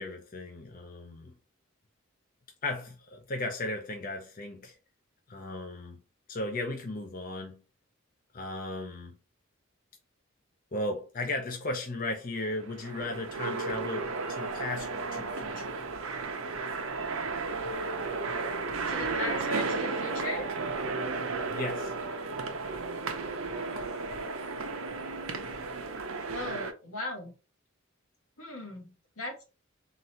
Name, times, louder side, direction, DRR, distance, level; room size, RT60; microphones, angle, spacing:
voice 1, 0.0-1.4 2.6-4.8 5.3-6.0 6.3-7.6 8.3-9.2 10.7-15.7 21.5-21.9, left 2 dB, 40° left, 0.7 m, -36 dB
sound 1, 12.4-26.7, right 3 dB, 85° right, 0.7 m, -34 dB
voice 2, 18.8-20.4 26.3-27.3 28.4-28.9 29.2-29.4, left 2 dB, 90° left, 1.8 m, -37 dB
4.0 x 2.6 x 4.3 m
head